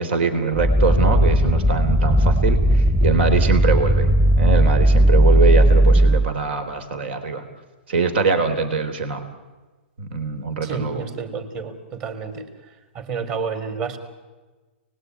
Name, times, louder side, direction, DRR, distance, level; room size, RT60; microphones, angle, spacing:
voice 1, 0.0-4.1 4.4-7.4 7.9-9.2 10.0-11.1, right 4 dB, 70° right, 9 dB, 3.9 m, -23 dB
sound 1, 0.5-6.3, right 1 dB, 10° right, 1.2 m, -16 dB
voice 2, 10.6-12.4 12.9-14.0, right 5 dB, 35° right, 8 dB, 4.2 m, -30 dB
29.0 x 20.5 x 9.7 m, 1.3 s
hypercardioid pair, 150°, 6 cm